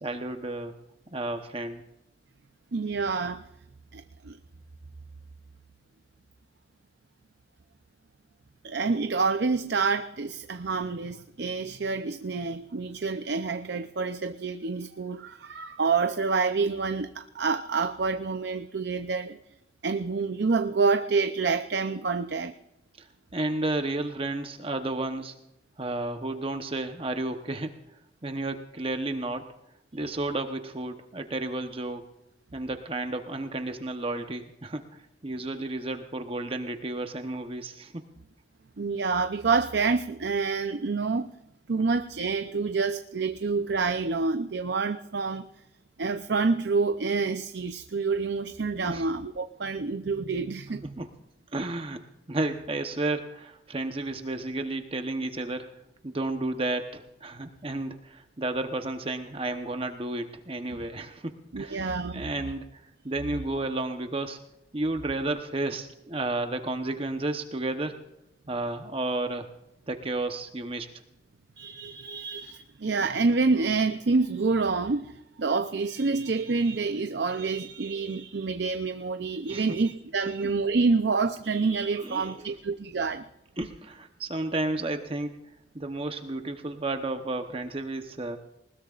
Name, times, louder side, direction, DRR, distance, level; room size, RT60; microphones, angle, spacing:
voice 1, 0.0-0.7 1.1-1.8 23.3-25.3 25.8-27.7 28.2-29.5 29.9-32.0 32.5-34.8 35.2-38.1 48.8-49.1 51.0-51.1 51.5-52.0 52.3-55.7 56.0-64.4 64.7-68.0 68.5-69.5 69.9-70.9 79.5-79.7 82.0-82.5 83.6-85.4 85.7-88.4, right 2 dB, 30° right, 6 dB, 0.9 m, -32 dB
voice 2, 2.7-3.4 3.9-4.4 8.6-19.4 19.8-22.5 30.0-30.1 38.8-41.3 41.7-45.5 46.0-51.0 60.8-60.9 61.5-62.3 71.6-83.2, right 4 dB, 65° right, 9 dB, 0.6 m, -27 dB
20.0 x 20.0 x 2.5 m, 0.86 s
head